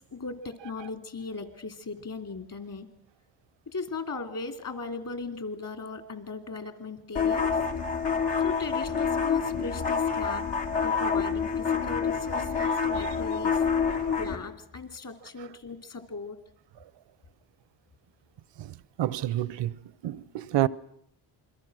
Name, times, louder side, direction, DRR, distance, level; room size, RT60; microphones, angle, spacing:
voice 1, 0.0-2.9 3.7-7.5 8.4-10.5 10.8-13.6 14.2-16.4, left 4 dB, 50° left, 3.0 m, -38 dB
sound 1, 7.2-14.4, left 6 dB, 75° left, 3.5 m, -27 dB
voice 2, 13.9-14.2 18.6-19.8 20.0-20.7, right 14 dB, 80° right, 0.8 m, -30 dB
28.0 x 22.5 x 6.3 m
cardioid pair, 70°, 43 cm